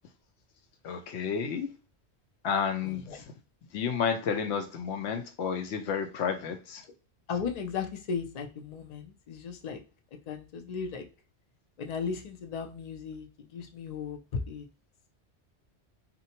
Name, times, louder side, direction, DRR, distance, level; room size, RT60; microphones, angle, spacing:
voice 1, 0.8-1.7 2.4-3.2 3.7-6.8, left 6 dB, 80° left, 6 dB, 0.8 m, -31 dB
voice 2, 2.8-3.2 7.3-9.8 10.3-11.0 11.8-14.7, left 6 dB, 55° left, 4 dB, 0.5 m, -36 dB
2.6 x 2.1 x 2.8 m, 0.34 s
omnidirectional pair, 1.1 m